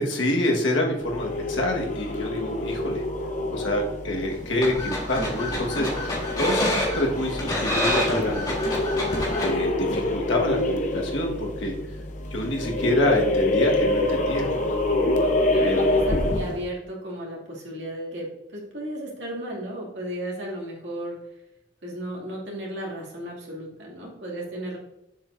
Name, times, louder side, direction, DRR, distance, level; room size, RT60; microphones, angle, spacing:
voice 1, 0.0-3.0 3.5-8.6 9.4-11.8 12.3-14.5 15.6-16.0, left 1 dB, 90° left, 0 dB, 1.5 m, -27 dB
sound 1, 1.0-16.7, left 2 dB, 40° left, 0.7 m, -26 dB
sound 2, 4.3-9.5, left 1 dB, 20° left, 1.6 m, -28 dB
voice 2, 15.5-21.2 21.8-24.8, right 1 dB, 70° right, -3 dB, 2.4 m, -35 dB
7.2 x 6.8 x 2.6 m, 0.90 s
head